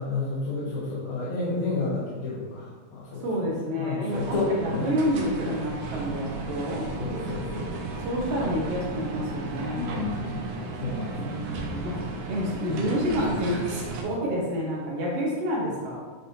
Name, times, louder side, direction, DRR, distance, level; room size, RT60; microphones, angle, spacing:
voice 1, 0.0-3.5 3.7-4.9 7.0-7.7 9.7-10.4 10.8-11.4, left 3 dB, 75° left, -9 dB, 2.6 m, -31 dB
voice 2, 3.2-6.9 8.0-9.9 11.2-12.0 12.3-16.0, equal, 60° right, -3 dB, 1.8 m, -29 dB
sound 1, 4.1-14.0, right 3 dB, 85° right, 1.3 m, -34 dB
9.1 x 4.1 x 2.8 m, 1.4 s
omnidirectional pair, 3.7 m